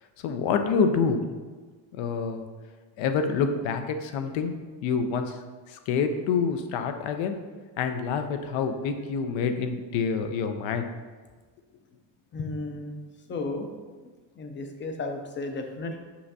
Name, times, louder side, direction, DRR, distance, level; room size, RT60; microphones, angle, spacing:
voice 1, 0.2-1.2 1.9-2.5 3.0-4.5 4.8-5.4 5.7-7.4 7.8-10.9, left 5 dB, 70° left, 7 dB, 0.7 m, -27 dB
voice 2, 12.3-13.0 13.3-13.7 14.4-16.0, left 3 dB, 25° left, 5 dB, 0.4 m, -33 dB
6.2 x 5.6 x 2.7 m, 1.4 s
cardioid pair, 145°, 48 cm